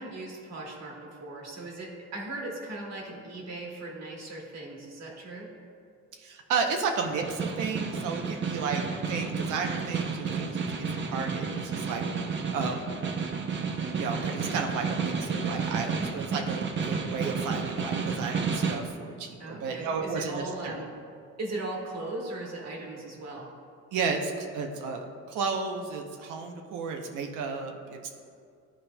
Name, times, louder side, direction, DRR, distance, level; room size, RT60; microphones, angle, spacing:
voice 1, 0.0-5.5 8.4-8.7 19.4-20.9 21.4-23.5, right 2 dB, 60° right, -1 dB, 1.5 m, -38 dB
voice 2, 6.1-12.0 12.5-12.8 14.0-20.8 23.9-28.1, right 5 dB, 90° right, 3 dB, 0.7 m, -33 dB
Snare drum, 7.1-18.9, right 5 dB, 40° right, 0.6 m, -31 dB
12.0 x 4.2 x 2.2 m, 2.3 s
cardioid pair, 90°, 30 cm